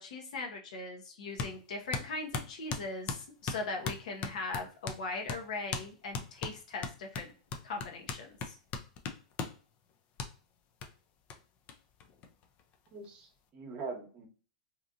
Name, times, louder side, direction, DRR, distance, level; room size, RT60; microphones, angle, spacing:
voice 1, 0.0-7.3 7.6-8.6, left 3 dB, 70° left, 3 dB, 0.8 m, -40 dB
sound 1, 1.4-1.6 1.9-5.0 5.3-5.4 5.7-5.9 6.1-9.6 10.2-10.3 10.8-10.9 11.3-11.4 11.7-11.8 12.0-12.7, left 5 dB, 40° left, 0.4 m, -38 dB
voice 2, 12.9-14.3, right 4 dB, 30° right, 2 dB, 0.9 m, -42 dB
2.9 x 2.5 x 2.5 m, 0.38 s
hypercardioid pair, 120°, 4 cm